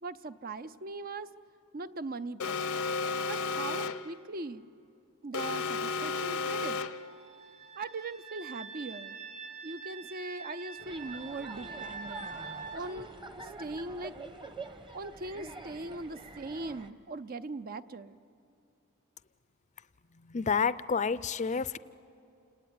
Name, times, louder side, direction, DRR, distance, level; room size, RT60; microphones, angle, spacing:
voice 1, 0.0-1.3 1.7-2.7 3.3-4.6 5.2-6.8 7.8-9.2 9.6-12.3 12.7-14.1 14.9-18.2, right 3 dB, 45° right, 12 dB, 0.6 m, -40 dB
Alarm, 2.4-4.1 5.3-7.1, left 4 dB, 75° left, 0.8 m, -33 dB
sound 1, 6.8-12.8, right 5 dB, 80° right, 2.3 m, -45 dB
sound 2, 10.8-16.9, right 2 dB, 20° right, 1.1 m, -46 dB
voice 2, 20.1-21.8, left 5 dB, 35° left, 16 dB, 0.5 m, -29 dB
29.5 x 19.5 x 9.6 m, 2.7 s
head